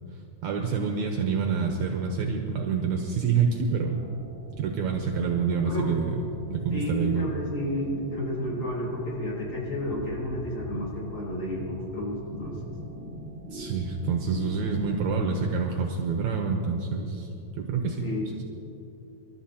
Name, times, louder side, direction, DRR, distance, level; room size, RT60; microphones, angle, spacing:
voice 1, 0.4-4.0 4.6-6.2 6.5-7.3 13.5-17.3 17.6-18.1, right 5 dB, 70° right, 2 dB, 2.1 m, -27 dB
sound 1, 3.9-15.5, equal, 45° right, 2.2 m, -41 dB
voice 2, 5.5-5.9 6.7-12.5 17.7-18.2, left 1 dB, 40° left, -5 dB, 4.8 m, -32 dB
27.5 x 13.0 x 2.9 m, 2.8 s
omnidirectional pair, 3.7 m